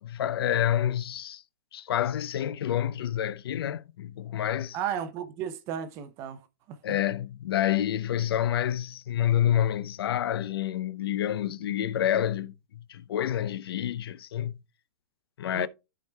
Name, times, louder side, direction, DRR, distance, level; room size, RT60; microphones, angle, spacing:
voice 1, 0.0-1.4 1.7-4.8 6.8-14.5 15.4-15.7, left 11 dB, 70° left, 0.5 m, -28 dB
voice 2, 4.7-6.4 6.7-7.0 15.5-15.7, right 9 dB, 20° right, 0.6 m, -34 dB
13.5 x 4.7 x 2.2 m
supercardioid pair, 170°, 13 cm